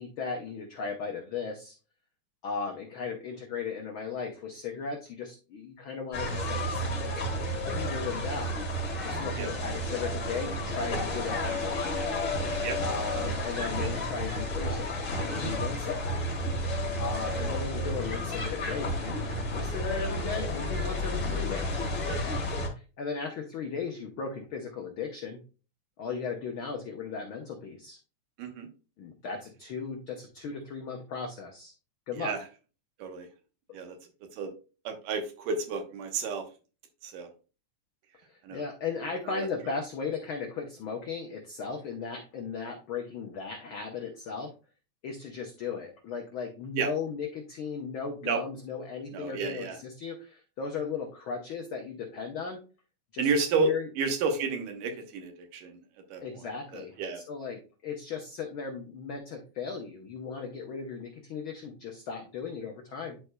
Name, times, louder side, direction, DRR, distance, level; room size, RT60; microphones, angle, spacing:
voice 1, 0.0-1.8 2.4-6.8 7.7-12.0 12.8-16.2 16.9-21.8 22.7-25.4 26.0-28.0 29.0-31.7 32.1-32.3 33.7-33.8 38.3-44.5 45.0-52.6 53.1-53.3 53.6-53.9 56.2-63.2, left 5 dB, 80° left, 1 dB, 1.1 m, -36 dB
sound 1, 6.1-22.7, left 1 dB, 40° left, 2.1 m, -31 dB
voice 2, 34.9-36.4 37.0-37.3 38.4-38.6 39.3-39.5 46.8-46.9 48.2-48.4 49.1-49.8 53.2-55.8 56.1-56.2 56.7-57.2, right 4 dB, 90° right, 5 dB, 2.7 m, -31 dB
11.0 x 4.5 x 2.2 m, 0.34 s
omnidirectional pair, 3.6 m